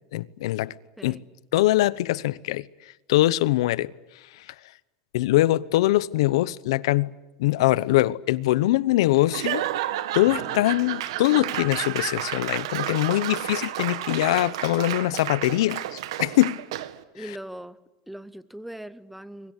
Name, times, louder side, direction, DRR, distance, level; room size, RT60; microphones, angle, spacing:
voice 1, 0.1-0.7 1.0-1.2 1.5-2.7 3.1-3.9 4.4-4.5 5.1-7.1 7.4-9.6 10.1-16.6, left 16 dB, 75° left, 0.9 m, -22 dB
Laughter / Applause / Crowd, 9.3-17.0, right 13 dB, 80° right, 1.7 m, -31 dB
voice 2, 17.1-17.8 18.1-19.5, right 1 dB, ahead, 0.8 m, -40 dB
26.0 x 23.5 x 8.3 m
supercardioid pair, 175°, 3 cm